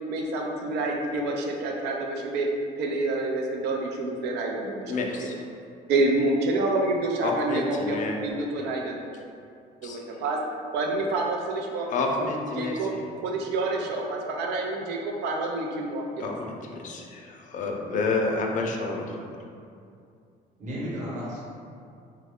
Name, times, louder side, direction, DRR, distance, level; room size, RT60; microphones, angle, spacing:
voice 1, 0.1-2.5 2.8-5.3 5.9-8.0 8.2-9.0 9.8-10.4 10.7-12.3 12.6-16.3, right 2 dB, 85° right, 0 dB, 0.5 m, -28 dB
voice 2, 4.9-5.4 7.2-8.2 8.6-8.7 9.8-10.2 11.9-13.0 16.2-19.1, left 3 dB, 50° left, 1 dB, 0.5 m, -29 dB
voice 3, 18.5-19.1 20.6-21.4, equal, 45° right, -7 dB, 1.1 m, -35 dB
3.1 x 2.2 x 3.5 m, 2.4 s
cardioid pair, 110°, 17 cm